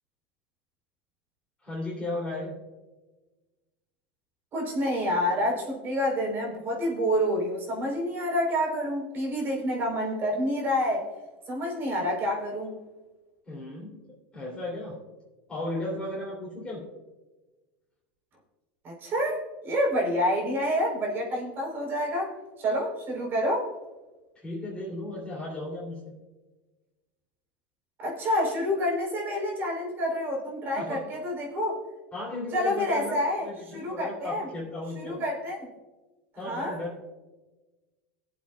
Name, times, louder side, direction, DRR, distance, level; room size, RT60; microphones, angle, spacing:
voice 1, 1.6-2.5 13.5-14.0 14.3-15.0 15.5-16.8 24.4-26.0 30.7-31.0 32.1-35.2 36.4-37.1, left 2 dB, 15° left, -5 dB, 3.0 m, -35 dB
voice 2, 4.5-11.1 11.5-12.7 18.8-22.3 22.6-23.7 28.0-31.7 32.5-34.5 35.0-35.7 36.4-36.8, equal, 40° right, -1 dB, 4.0 m, -28 dB
20.0 x 7.9 x 2.4 m, 1.2 s
supercardioid pair, 110°, 6 cm